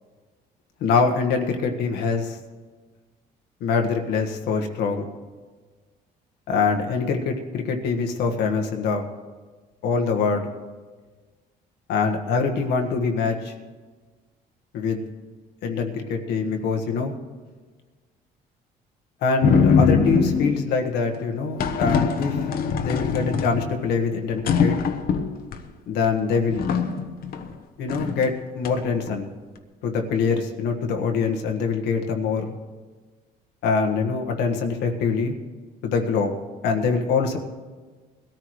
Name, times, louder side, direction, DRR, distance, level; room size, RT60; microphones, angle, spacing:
voice 1, 0.8-2.4 3.6-5.0 6.5-9.0 9.8-10.5 11.9-13.5 14.7-15.0 15.6-17.1 19.2-22.4 22.8-24.8 25.9-26.7 27.8-29.3 29.8-32.5 33.6-35.3 35.8-36.3 36.6-37.4, left 5 dB, 80° left, 4 dB, 1.5 m, -24 dB
sound 1, 19.4-20.7 21.6-23.9 24.3-25.6 26.0-26.1 26.5-27.5 27.9-28.2 28.6-29.1, left 6 dB, 60° left, 1.0 m, -22 dB
21.0 x 13.5 x 3.2 m, 1.4 s
cardioid pair, 110°, 17 cm